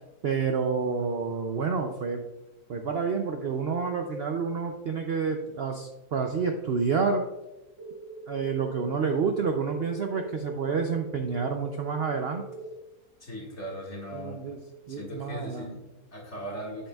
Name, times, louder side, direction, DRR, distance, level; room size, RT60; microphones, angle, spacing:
voice 1, 0.2-2.3 2.7-7.2 8.3-12.5 14.1-14.6 14.9-15.7, right 5 dB, 70° right, 4 dB, 0.6 m, -29 dB
sound 1, 7.8-12.8, right 1 dB, 25° right, 0.6 m, -42 dB
voice 2, 13.2-14.5 14.9-16.9, equal, 45° left, -3 dB, 2.1 m, -39 dB
8.3 x 7.7 x 2.3 m, 1.0 s
omnidirectional pair, 1.7 m